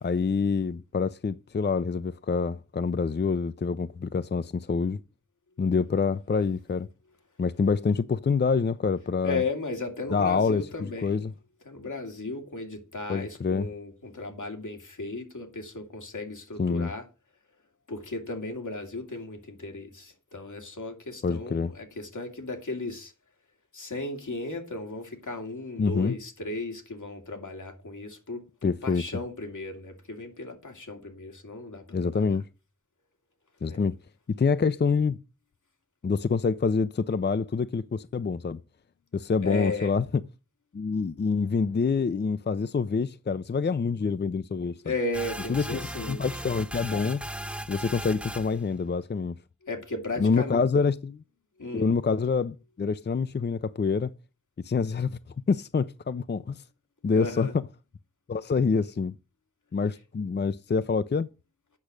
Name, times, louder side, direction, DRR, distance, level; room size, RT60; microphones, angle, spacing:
voice 1, 0.0-5.0 5.6-6.9 7.4-9.4 10.1-10.6 11.0-11.3 13.1-13.7 16.6-16.9 21.2-21.7 25.8-26.2 28.6-29.0 31.9-32.4 33.6-34.0 34.4-35.2 36.0-38.6 39.1-40.0 40.7-44.8 45.5-45.6 46.1-47.2 47.7-49.4 50.2-51.2 51.7-54.1 54.6-55.2 55.5-56.6 57.0-57.5 58.3-59.1 59.7-61.3, left 5 dB, 35° left, 0.5 m, -26 dB
voice 2, 9.2-11.3 11.6-17.1 17.9-23.1 23.7-32.4 33.6-33.8 39.4-40.0 44.8-46.2 49.6-50.6 51.6-51.9 57.1-57.5, left 2 dB, 80° left, 2.3 m, -35 dB
sound 1, 45.1-48.6, right 1 dB, 5° right, 0.9 m, -37 dB
8.5 x 6.0 x 6.4 m
wide cardioid pair, 50°, 30 cm